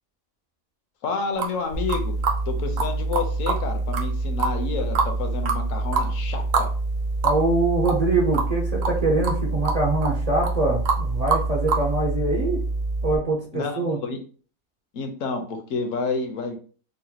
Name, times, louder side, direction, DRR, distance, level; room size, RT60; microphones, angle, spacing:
voice 1, 1.0-2.1 2.5-6.7 13.5-14.2 14.9-16.6, left 4 dB, 70° left, 4 dB, 1.1 m, -29 dB
sound 1, 1.4-1.5 1.9-2.4 2.8-2.9 3.1-3.6 3.9-4.0 4.4-5.1 5.5-5.6 5.9-6.1 6.5-6.7 7.0-7.1 7.2-7.4 7.8-8.1 8.3-8.5 8.8-9.0 9.2-9.4 9.6-10.1 10.4-10.6 10.8-11.0 11.3-11.8, right 4 dB, 75° right, 1.1 m, -24 dB
sound 2, 1.7-13.2, right 2 dB, 35° left, 0.5 m, -27 dB
voice 2, 7.2-12.6 13.0-14.0, right 2 dB, 50° right, -2 dB, 0.4 m, -24 dB
4.0 x 2.1 x 2.8 m, 0.40 s
omnidirectional pair, 1.4 m